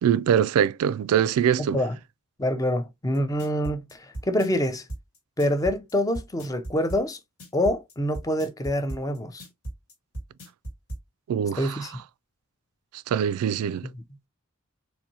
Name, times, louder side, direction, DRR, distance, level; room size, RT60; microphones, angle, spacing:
voice 1, 0.0-1.8 11.3-11.9 12.9-13.9, right 8 dB, 85° right, 0.3 m, -23 dB
voice 2, 1.6-2.0 2.4-4.9 5.4-7.2 7.5-9.5 11.5-12.0, left 1 dB, 15° left, 0.5 m, -26 dB
sound 1, 3.1-11.0, right 1 dB, 80° left, 1.8 m, -37 dB
4.1 x 2.6 x 2.7 m
head